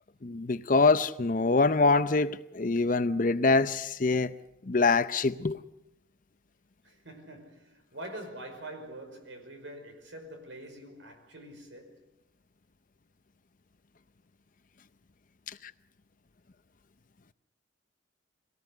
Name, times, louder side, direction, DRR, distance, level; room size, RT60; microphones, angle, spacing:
voice 1, 0.2-4.3 4.7-5.6, left 3 dB, 45° left, 0.7 m, -24 dB
voice 2, 6.8-12.1, right 1 dB, 75° right, 5.4 m, -45 dB
24.0 x 18.0 x 6.6 m
head